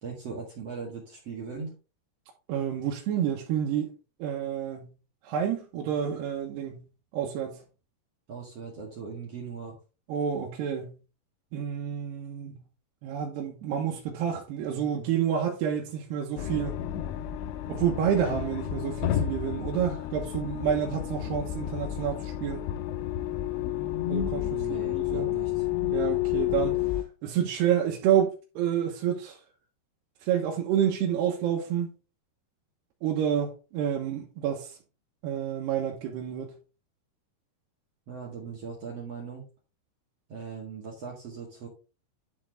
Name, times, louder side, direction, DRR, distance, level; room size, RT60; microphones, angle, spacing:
voice 1, 0.0-1.8 8.3-9.8 24.5-25.6 38.1-39.4 40.3-41.7, right 5 dB, 50° right, 1.9 m, -39 dB
voice 2, 2.5-3.9 4.2-4.9 5.2-6.8 7.1-7.6 10.1-11.0 11.5-12.6 13.0-16.8 17.7-22.7 24.1-25.3 25.9-26.8 27.2-29.4 30.2-31.9 33.0-34.8 35.2-36.5, right 9 dB, 70° right, 2.8 m, -29 dB
sound 1, 16.4-27.0, left 12 dB, 80° left, 2.9 m, -31 dB
11.0 x 4.4 x 3.6 m
omnidirectional pair, 5.7 m